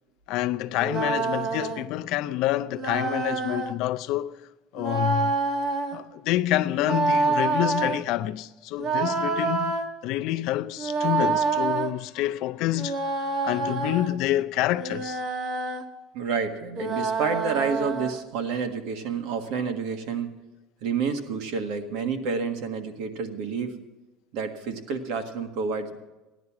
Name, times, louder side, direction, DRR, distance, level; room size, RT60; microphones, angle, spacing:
voice 1, 0.3-4.4 4.7-5.3 5.9-13.0 13.4-15.2, left 15 dB, 55° left, 0.5 m, -27 dB
sound 1, 0.8-1.8 2.8-3.7 4.8-6.0 6.8-8.0 8.8-9.9 10.8-11.9 12.8-14.1 14.8-15.8 16.8-18.2, right 4 dB, 35° right, 1.2 m, -27 dB
voice 2, 16.1-20.4 20.8-23.8 24.3-26.0, right 5 dB, 65° right, 1.6 m, -29 dB
15.5 x 11.0 x 5.9 m
cardioid pair, 180°, 0 cm